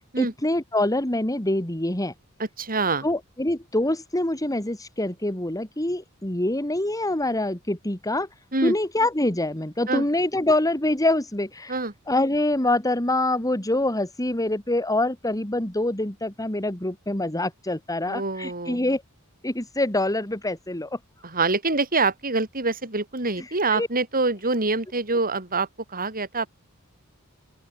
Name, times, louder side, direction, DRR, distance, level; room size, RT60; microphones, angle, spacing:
voice 1, 0.2-2.1 3.0-8.3 8.6-11.8 12.1-19.0 19.4-21.0 23.7-23.9, left 1 dB, 15° left, 2.6 m, -25 dB
voice 2, 2.4-3.1 8.5-8.7 9.9-10.1 11.7-11.9 18.1-18.8 21.2-26.5, right 3 dB, 40° right, 6.1 m, -25 dB
open air
head